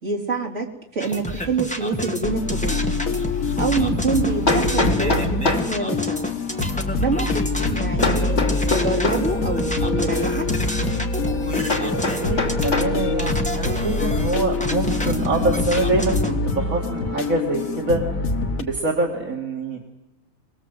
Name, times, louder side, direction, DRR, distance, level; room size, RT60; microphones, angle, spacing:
voice 1, 0.0-2.9 3.6-6.3 7.0-8.4 8.7-10.5, right 3 dB, 55° right, -2 dB, 4.1 m, -26 dB
sound 1, 1.0-16.4, equal, 5° left, 2.1 m, -29 dB
sound 2, 2.2-18.6, left 3 dB, 70° left, 2.0 m, -25 dB
voice 2, 4.1-4.5 11.7-18.3 18.6-19.8, right 3 dB, 70° right, -1 dB, 2.9 m, -25 dB
Hammer, 4.5-5.8 8.0-9.3 11.7-13.0, left 2 dB, 50° left, 3.3 m, -24 dB
27.5 x 20.5 x 8.1 m, 0.93 s
omnidirectional pair, 1.5 m